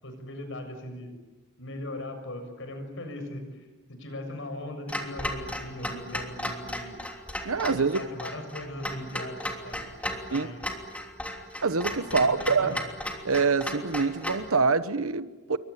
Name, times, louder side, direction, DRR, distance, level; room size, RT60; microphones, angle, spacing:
voice 1, 0.0-1.1 1.6-7.0 7.7-9.4 9.6-10.6 12.1-12.9, left 1 dB, 65° left, 7 dB, 7.0 m, -39 dB
Clock, 4.9-14.5, left 1 dB, 5° left, 3.1 m, -35 dB
voice 2, 7.4-8.0 10.3-10.5 11.6-12.8 13.2-15.6, right 4 dB, 85° right, 13 dB, 1.2 m, -25 dB
28.0 x 24.0 x 8.6 m, 1.2 s
head